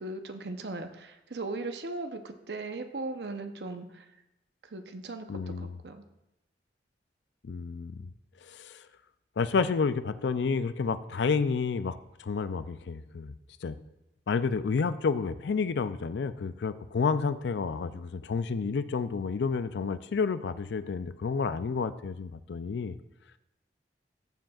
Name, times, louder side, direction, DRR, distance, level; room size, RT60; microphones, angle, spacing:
voice 1, 0.0-4.0 4.7-6.0, right 2 dB, 70° right, 7 dB, 0.8 m, -38 dB
voice 2, 5.3-5.8 7.5-8.1 8.5-8.8 9.4-13.3 13.6-13.8 14.3-22.9, left 5 dB, 75° left, 13 dB, 0.4 m, -30 dB
14.0 x 7.7 x 2.4 m, 0.89 s
head